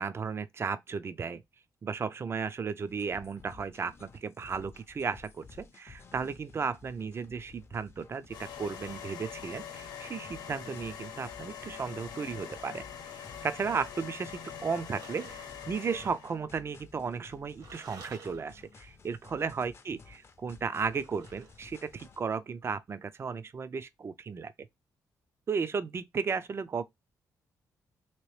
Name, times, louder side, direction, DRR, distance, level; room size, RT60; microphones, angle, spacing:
voice 1, 0.0-1.4 1.8-12.8 13.1-24.7 25.5-26.8, right 5 dB, 35° right, 0.4 m, -35 dB
sound 1, 2.9-22.2, left 5 dB, 40° left, 0.6 m, -55 dB
sound 2, 8.3-16.4, left 8 dB, 75° left, 0.8 m, -44 dB
sound 3, 14.9-15.7 17.6-18.8 20.9-22.0, right 4 dB, 65° right, 1.2 m, -52 dB
3.1 x 3.0 x 3.1 m
cardioid pair, 85°, 7 cm